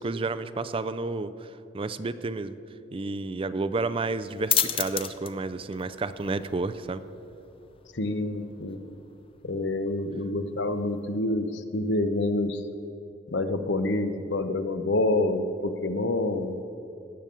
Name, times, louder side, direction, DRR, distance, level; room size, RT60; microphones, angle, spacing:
voice 1, 0.0-2.6 2.9-7.0, right 3 dB, 30° right, 12 dB, 0.4 m, -31 dB
sound 1, 3.9-11.2, left 9 dB, 30° left, 0.6 m, -35 dB
voice 2, 7.9-8.8 9.4-12.6 13.3-16.6, left 2 dB, 70° left, 9 dB, 0.8 m, -27 dB
18.0 x 6.9 x 7.5 m, 2.8 s
head